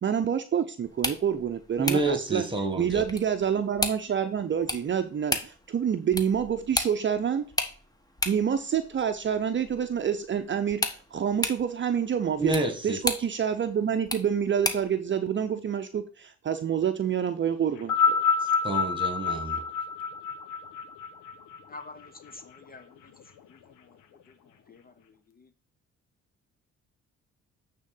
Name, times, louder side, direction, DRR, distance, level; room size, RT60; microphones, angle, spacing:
voice 1, 0.0-2.4 2.8-7.4 8.3-12.5 12.8-18.2, right 8 dB, 40° right, 0.7 m, -27 dB
sound 1, 0.8-15.0, left 1 dB, 10° left, 1.2 m, -36 dB
voice 2, 1.8-3.0 12.4-13.0 18.6-19.6, right 3 dB, 15° right, 1.7 m, -28 dB
sound 2, 17.8-22.3 23.2-23.3, left 5 dB, 90° left, 1.0 m, -27 dB
voice 3, 21.7-22.9 24.7-24.9, left 3 dB, 30° left, 0.7 m, -45 dB
8.7 x 3.8 x 5.4 m
cardioid pair, 90°, 30 cm